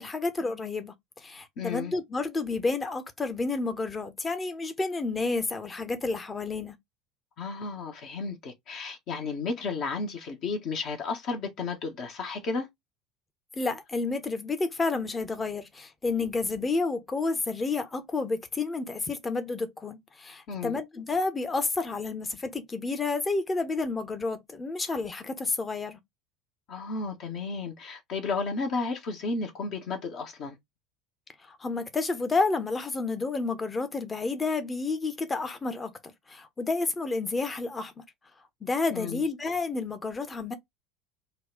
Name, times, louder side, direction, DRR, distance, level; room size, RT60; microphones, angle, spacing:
voice 1, 0.0-6.8 13.5-26.0 31.5-37.9 38.6-40.6, left 3 dB, 20° left, 0.8 m, -30 dB
voice 2, 1.6-1.9 7.4-12.7 20.5-20.7 26.7-30.6 38.9-39.2, left 4 dB, 45° left, 1.0 m, -33 dB
3.9 x 2.3 x 3.8 m
figure-of-eight pair, 70°, 0 cm